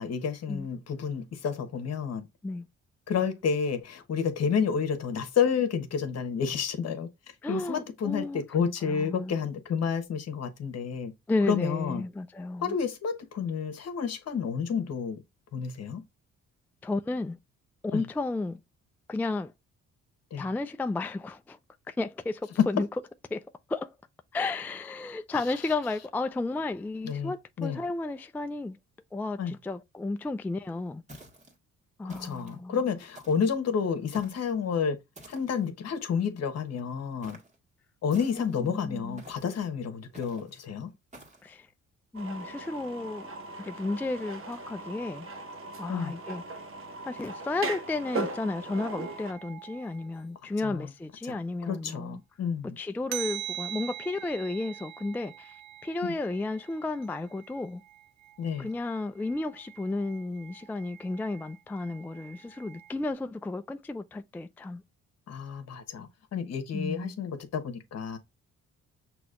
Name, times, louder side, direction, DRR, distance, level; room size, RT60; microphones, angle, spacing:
voice 1, 0.0-2.3 3.1-7.1 7.5-11.1 11.4-12.0 12.6-15.2 15.5-16.0 17.9-18.0 20.3-20.5 27.0-27.3 27.6-27.8 29.4-29.5 32.0-35.0 35.3-37.4 38.0-40.9 45.9-46.1 50.6-50.9 51.2-51.4 51.7-52.8 56.0-56.1 58.4-58.7 65.3-68.2, left 6 dB, 55° left, 1.2 m, -30 dB
voice 2, 7.4-9.4 11.3-12.8 16.8-17.4 17.8-18.6 19.1-19.5 20.4-21.6 21.9-22.9 23.3-23.4 23.7-23.9 24.3-28.8 29.1-31.0 32.0-32.8 38.3-39.2 41.4-41.7 42.1-43.3 43.6-45.3 45.8-46.4 47.1-52.2 52.8-57.8 58.6-64.8 66.7-67.2, left 2 dB, 5° left, 0.3 m, -33 dB
Footsteps Boots Gritty Ground Stones Leaves Mono, 31.1-31.6 32.1-32.6 33.1-33.5 34.1-34.5 35.1-35.7 37.2-37.6 38.1-38.6 39.2-39.6 40.1-40.5 41.1-41.5, right 1 dB, 25° right, 1.7 m, -50 dB
sound 1, 42.1-49.3, right 2 dB, 45° right, 1.1 m, -38 dB
sound 2, 48.7-50.2 53.1-63.1, right 13 dB, 65° right, 0.5 m, -44 dB
6.1 x 2.9 x 2.4 m
cardioid pair, 90°, 30 cm